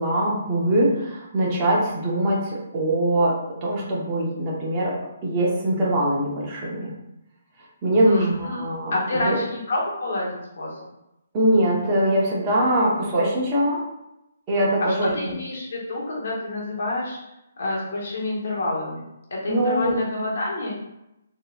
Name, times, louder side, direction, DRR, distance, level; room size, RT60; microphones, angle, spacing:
voice 1, 0.0-5.0 5.2-6.9 7.8-9.4 11.3-13.8 14.5-15.3 19.5-19.9, right 1 dB, 20° right, -5 dB, 0.9 m, -22 dB
voice 2, 8.0-8.6 8.9-10.8 14.8-17.2 17.6-20.8, left 2 dB, 60° left, -4 dB, 1.3 m, -28 dB
3.8 x 2.7 x 2.3 m, 0.89 s
hypercardioid pair, 160°, 0 cm